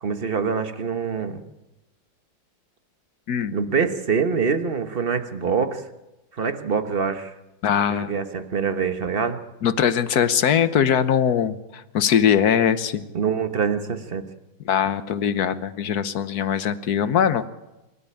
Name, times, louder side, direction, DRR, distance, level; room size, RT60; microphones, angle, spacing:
voice 1, 0.0-1.4 3.5-5.8 6.4-7.3 7.9-9.4 13.1-14.2, right 6 dB, 35° right, 8 dB, 1.3 m, -25 dB
voice 2, 3.3-3.6 7.6-8.1 9.6-13.0 14.6-17.5, left 8 dB, 60° left, 13 dB, 1.4 m, -21 dB
26.5 x 13.0 x 8.8 m, 0.99 s
omnidirectional pair, 2.1 m